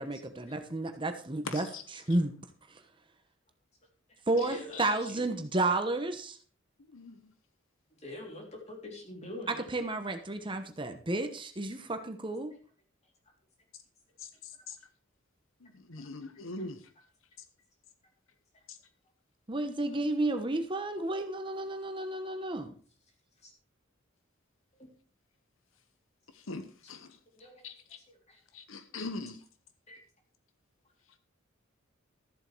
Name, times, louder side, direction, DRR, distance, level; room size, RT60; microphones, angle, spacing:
voice 1, 0.0-1.7 2.1-2.3 2.7-2.8 4.3-6.4 9.5-12.5 19.5-22.7, right 2 dB, 25° right, 1.0 m, -32 dB
voice 2, 1.4-1.8 4.4-4.9 6.9-7.3 14.2-14.8 15.6-16.9 18.7-18.8 26.3-27.2 27.6-28.0 28.5-29.4, left 3 dB, 80° left, 1.0 m, -42 dB
voice 3, 4.4-4.8 5.1-5.2 8.0-9.7 23.4-23.5 27.4-27.6 28.3-28.4 29.9-30.0, left 1 dB, 35° left, 3.5 m, -44 dB
13.5 x 7.7 x 4.6 m
head